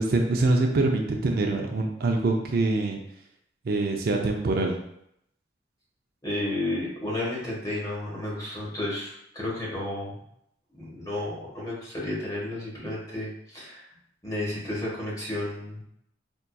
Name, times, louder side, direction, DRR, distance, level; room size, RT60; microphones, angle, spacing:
voice 1, 0.0-3.0 3.6-4.8, right 2 dB, 55° right, 2 dB, 0.4 m, -24 dB
voice 2, 6.2-10.2 10.7-13.9 14.2-15.8, left 1 dB, 20° left, -6 dB, 1.2 m, -32 dB
4.4 x 2.7 x 2.2 m, 0.74 s
head